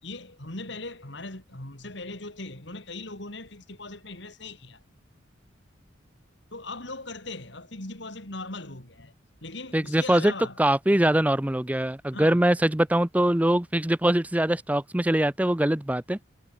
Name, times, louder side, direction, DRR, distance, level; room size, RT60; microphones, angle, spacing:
voice 1, 0.0-4.8 6.5-9.1 9.4-10.6 10.9-11.2 12.1-12.5, left 2 dB, 60° left, 3.8 m, -39 dB
voice 2, 9.7-10.3 10.6-16.2, right 1 dB, 5° right, 0.5 m, -23 dB
head